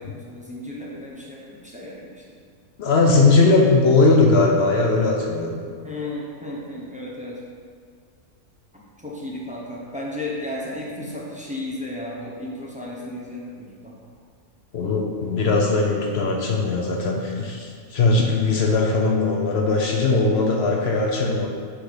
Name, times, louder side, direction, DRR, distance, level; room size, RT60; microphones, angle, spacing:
voice 1, 0.0-2.2 3.0-3.2 3.5-3.9 5.8-7.4 9.0-13.9, left 1 dB, 10° right, -5 dB, 0.5 m, -34 dB
voice 2, 2.8-5.6 14.7-21.5, left 3 dB, 60° left, 0 dB, 0.7 m, -19 dB
6.0 x 3.4 x 5.6 m, 2.1 s
omnidirectional pair, 1.5 m